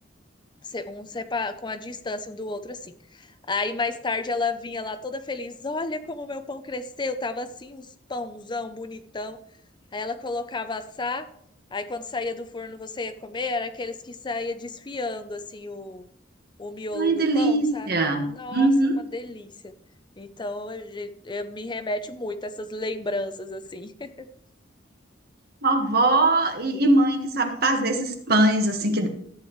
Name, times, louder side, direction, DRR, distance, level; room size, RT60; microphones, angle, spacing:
voice 1, 0.6-9.4 9.9-11.3 11.7-16.0 16.6-17.9 18.3-18.7 19.1-19.7 20.2-24.3, left 3 dB, 25° left, 10 dB, 0.6 m, -32 dB
voice 2, 16.9-19.0 25.6-29.1, right 2 dB, 55° right, 4 dB, 1.6 m, -21 dB
13.5 x 8.9 x 3.2 m, 0.68 s
head